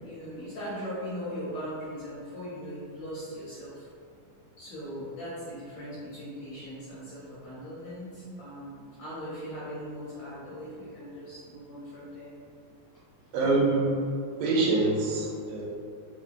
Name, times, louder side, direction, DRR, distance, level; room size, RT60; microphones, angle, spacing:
voice 1, 0.0-3.9 4.6-12.3, equal, 70° left, -9 dB, 1.7 m, -39 dB
voice 2, 13.3-14.0 14.4-15.6, right 3 dB, 85° right, -4 dB, 2.4 m, -25 dB
5.3 x 2.1 x 2.6 m, 2.3 s
omnidirectional pair, 3.9 m